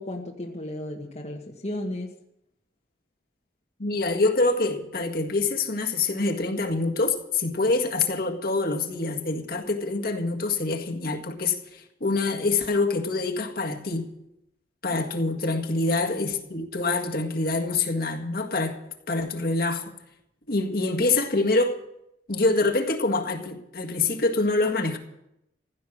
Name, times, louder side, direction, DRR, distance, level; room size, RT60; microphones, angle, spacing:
voice 1, 0.0-2.1, left 1 dB, 40° left, 1.4 m, -34 dB
voice 2, 3.8-14.1 14.8-18.8 19.1-19.8 20.5-21.8 22.3-25.0, left 3 dB, 55° left, 1.8 m, -25 dB
16.0 x 11.5 x 6.5 m
head